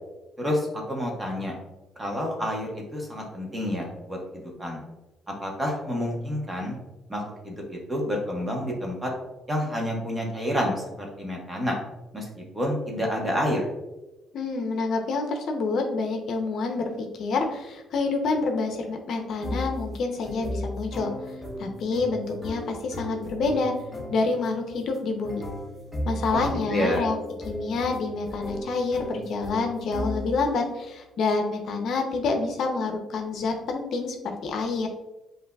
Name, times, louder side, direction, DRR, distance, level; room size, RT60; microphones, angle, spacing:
voice 1, 0.4-1.5 2.0-4.8 5.4-6.7 7.1-9.1 9.5-11.8 12.1-13.6 26.3-26.4 26.7-27.0, equal, 15° right, -1 dB, 1.1 m, -29 dB
voice 2, 14.3-21.1 21.6-23.7 24.1-25.4 26.1-27.2 27.4-34.2 34.4-34.9, left 3 dB, 60° left, 3 dB, 0.6 m, -27 dB
sound 1, 19.4-30.6, equal, 5° left, 0.7 m, -36 dB
7.4 x 2.7 x 2.3 m, 1.0 s
cardioid pair, 125°, 0 cm